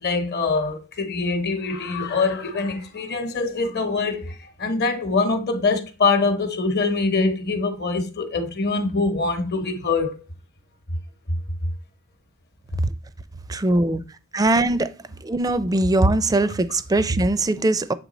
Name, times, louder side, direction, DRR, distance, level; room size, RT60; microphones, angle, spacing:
voice 1, 0.0-10.2 14.3-14.5, left 3 dB, 50° left, 0.9 m, -24 dB
voice 2, 13.5-14.0 14.3-14.9 15.3-17.9, right 2 dB, 20° right, 0.4 m, -20 dB
7.5 x 3.2 x 4.1 m
head